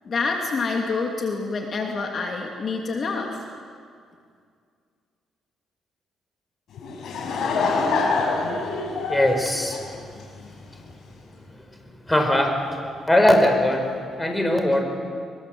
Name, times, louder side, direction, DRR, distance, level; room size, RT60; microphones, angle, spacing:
voice 1, 0.0-3.5, left 4 dB, 50° left, 1 dB, 2.9 m, -27 dB
Laughter / Crowd, 6.7-10.5, left 4 dB, 70° left, 5.9 m, -25 dB
voice 2, 9.1-10.0 11.5-11.6 12.0-12.6 13.0-13.9 14.2-14.8, left 1 dB, 10° left, 4 dB, 4.9 m, -20 dB
24.5 x 23.5 x 7.9 m, 2.2 s
cardioid pair, 90°, 0 cm